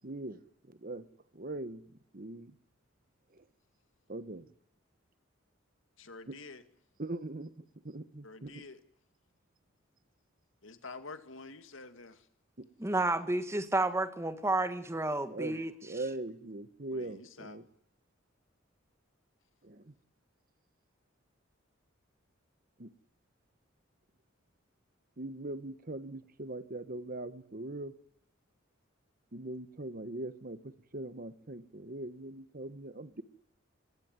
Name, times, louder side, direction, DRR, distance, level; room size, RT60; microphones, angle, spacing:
voice 1, 0.0-1.1 1.3-1.8 2.1-2.6 3.3-3.5 4.1-4.5 6.3-6.4 7.0-8.6 12.6-12.7 15.3-17.7 19.6-19.9 22.8-22.9 25.2-27.9 29.3-33.2, right 2 dB, 45° right, 1.2 m, -41 dB
voice 2, 6.0-6.6 8.2-8.8 10.6-12.3 16.9-17.6, left 3 dB, 75° left, 2.2 m, -48 dB
voice 3, 12.8-15.7, right 2 dB, 15° right, 1.6 m, -31 dB
21.5 x 17.0 x 9.5 m
head